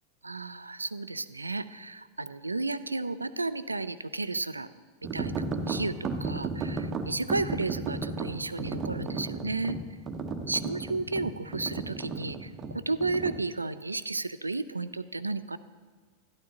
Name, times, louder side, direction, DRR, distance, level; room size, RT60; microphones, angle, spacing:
voice 1, 0.2-4.7 5.1-9.8 10.5-15.6, right 3 dB, 80° right, 14 dB, 0.4 m, -33 dB
sound 1, 5.0-13.4, right 3 dB, 25° right, 0.8 m, -34 dB
13.0 x 11.5 x 2.9 m, 1.4 s
figure-of-eight pair, 90°, 0 cm